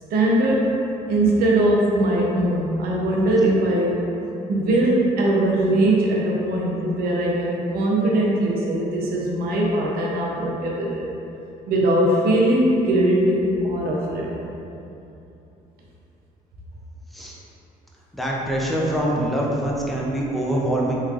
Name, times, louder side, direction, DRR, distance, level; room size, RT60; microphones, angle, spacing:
voice 1, 0.1-0.7 1.1-4.0 4.5-11.0 11.7-14.3, right 1 dB, 70° right, -3 dB, 0.7 m, -20 dB
voice 2, 18.1-21.0, right 1 dB, ahead, -4 dB, 0.6 m, -24 dB
3.4 x 3.1 x 2.4 m, 2.9 s
supercardioid pair, 75°, 16 cm